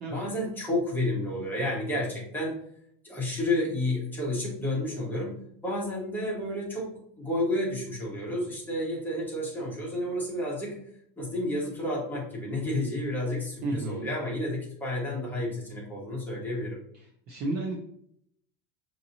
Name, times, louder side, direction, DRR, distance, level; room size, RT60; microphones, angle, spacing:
voice 1, 0.1-2.6 3.0-10.8 11.2-16.8, left 1 dB, 5° left, -5 dB, 1.2 m, -31 dB
voice 2, 13.6-14.1 17.3-17.8, right 2 dB, 30° right, -1 dB, 0.6 m, -31 dB
5.7 x 2.8 x 2.7 m, 0.69 s
cardioid pair, 165°, 32 cm